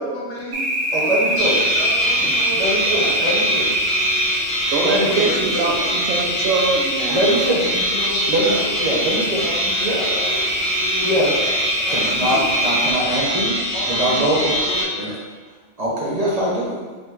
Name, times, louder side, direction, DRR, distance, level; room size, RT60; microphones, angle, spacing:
voice 1, 0.0-3.7 4.8-5.9 7.7-11.6 11.8-12.0 13.7-14.2 14.7-15.2, left 1 dB, 65° left, -4 dB, 1.2 m, -32 dB
sound 1, 0.5-12.9, right 1 dB, 60° right, 1.2 m, -25 dB
voice 2, 0.9-1.6 2.5-3.6 4.8-5.3 7.1-7.7 8.3-9.5 9.8-10.1 11.0-11.3 11.9-13.6 13.9-14.6 15.0-15.1 15.8-16.7, right 1 dB, 35° right, -6 dB, 0.8 m, -22 dB
sound 2, 1.4-14.8, equal, 90° left, 1.8 m, -23 dB
voice 3, 4.7-5.8 6.1-7.2, right 3 dB, 80° right, 2 dB, 0.9 m, -23 dB
5.2 x 2.1 x 3.7 m, 1.4 s
omnidirectional pair, 1.3 m